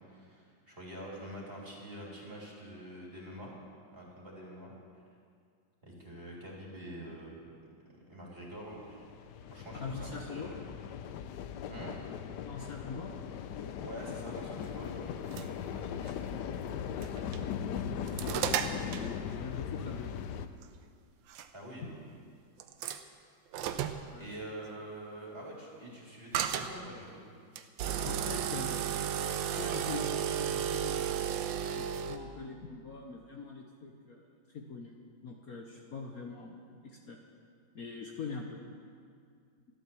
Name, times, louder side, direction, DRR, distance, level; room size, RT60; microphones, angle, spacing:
voice 1, 0.0-3.5 3.9-4.7 5.8-7.5 8.1-9.0 9.5-10.4 11.7-12.0 13.8-16.0 21.5-21.9 24.2-27.3, right 1 dB, 30° right, -4 dB, 3.3 m, -45 dB
sound 1, 8.6-20.5, left 8 dB, 70° left, 1.2 m, -39 dB
voice 2, 9.8-10.5 12.4-13.1 16.9-20.2 21.8-21.9 24.1-24.3 27.9-29.1 29.4-31.4 31.7-34.9 35.2-37.2 37.7-38.6, left 4 dB, 55° left, 1 dB, 1.3 m, -43 dB
sound 2, 15.1-15.5 16.1-16.2 17.0-17.4 17.8-19.1 20.6-20.7 21.3-21.5 22.6-23.0 23.5-24.0 26.3-26.7 27.6-32.2, right 9 dB, 80° right, 1.5 m, -33 dB
13.0 x 12.5 x 7.1 m, 2.2 s
omnidirectional pair, 2.1 m